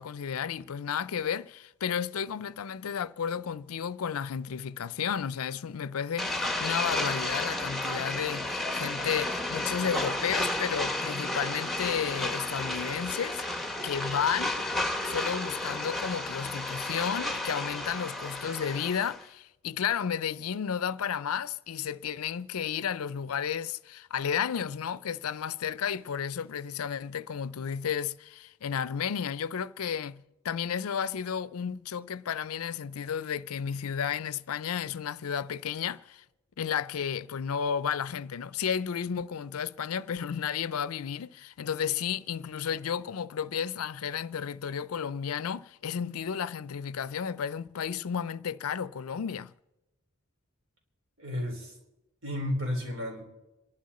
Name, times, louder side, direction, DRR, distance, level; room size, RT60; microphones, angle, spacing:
voice 1, 0.0-14.6 15.0-36.2 36.6-49.5, left 7 dB, 90° left, 0.5 m, -32 dB
sound 1, 6.2-19.2, left 1 dB, ahead, 1.1 m, -32 dB
voice 2, 51.2-51.7 52.2-53.2, left 1 dB, 65° right, 3.8 m, -32 dB
26.5 x 11.5 x 4.2 m
head